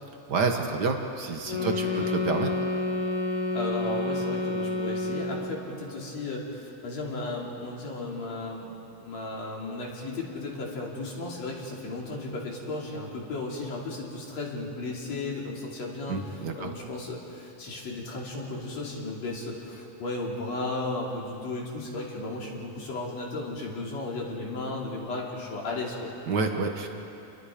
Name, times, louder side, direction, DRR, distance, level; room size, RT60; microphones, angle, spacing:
voice 1, 0.3-2.5 16.1-16.7 26.3-26.9, right 4 dB, 55° right, 4 dB, 1.2 m, -28 dB
sound 1, 1.5-5.7, left 3 dB, 85° left, 3.5 m, -29 dB
voice 2, 1.6-2.1 3.5-8.7 9.0-26.1, left 2 dB, 60° left, -2 dB, 4.0 m, -35 dB
30.0 x 22.0 x 5.1 m, 2.8 s
omnidirectional pair, 3.5 m